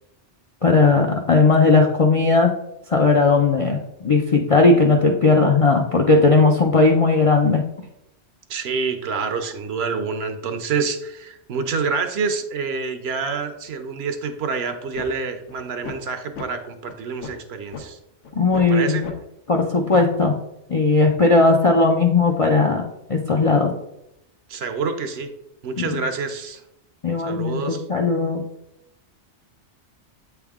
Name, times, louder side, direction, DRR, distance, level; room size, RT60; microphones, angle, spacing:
voice 1, 0.6-2.5 2.9-7.6 18.4-19.1 19.5-20.3 20.7-22.8 23.1-23.7 25.8-26.0 27.0-28.4, left 3 dB, 50° left, 1 dB, 0.4 m, -17 dB
voice 2, 8.5-18.0 18.7-19.1 24.5-25.3 25.6-26.6 27.2-27.8, right 5 dB, 65° right, 8 dB, 0.8 m, -27 dB
sound 1, 14.9-15.1 15.5-15.6 15.8-16.0 16.4-16.5 16.9-17.0 17.2-17.4 17.7-17.8 18.2-18.6 19.0-19.1 19.6-19.7 19.9-20.1, left 5 dB, 90° left, 1.2 m, -35 dB
7.9 x 3.5 x 3.5 m, 0.82 s
omnidirectional pair, 1.2 m